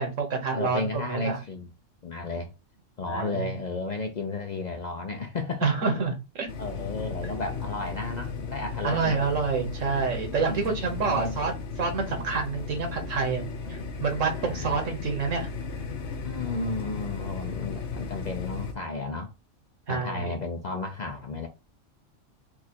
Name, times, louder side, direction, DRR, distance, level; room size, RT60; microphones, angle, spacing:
voice 1, 0.0-0.8 1.1-1.4 3.1-3.5 5.6-6.5 8.8-15.5 19.9-20.3, right 4 dB, 80° right, 1.6 m, -28 dB
voice 2, 0.5-1.7 2.0-2.5 3.0-5.7 6.6-9.2 10.5-10.7 11.0-11.4 14.4-15.0 16.2-19.3 19.9-21.5, left 3 dB, 50° left, 0.5 m, -33 dB
sound 1, 6.5-18.7, left 4 dB, 70° left, 1.0 m, -35 dB
4.4 x 2.4 x 4.2 m
omnidirectional pair, 1.3 m